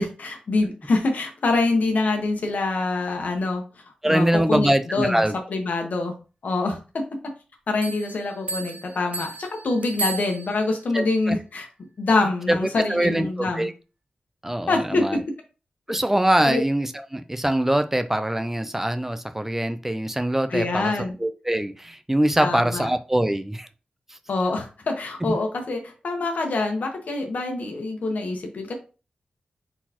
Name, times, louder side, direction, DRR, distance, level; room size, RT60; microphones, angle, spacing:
voice 1, 0.0-3.6 4.0-5.2 5.5-6.1 6.4-7.1 7.7-11.7 12.0-13.7 14.7-15.2 16.4-16.6 20.5-21.2 22.4-22.9 24.3-28.7, left 3 dB, 75° left, 3 dB, 1.1 m, -25 dB
voice 2, 4.0-5.4 10.9-11.4 12.5-12.6 12.9-13.7 14.4-15.2 15.9-20.9 21.2-23.7, right 1 dB, 15° right, 9 dB, 0.4 m, -23 dB
sound 1, 7.8-10.8, right 2 dB, 60° right, 0.6 m, -34 dB
4.1 x 4.0 x 2.9 m, 0.34 s
wide cardioid pair, 105°, 3 cm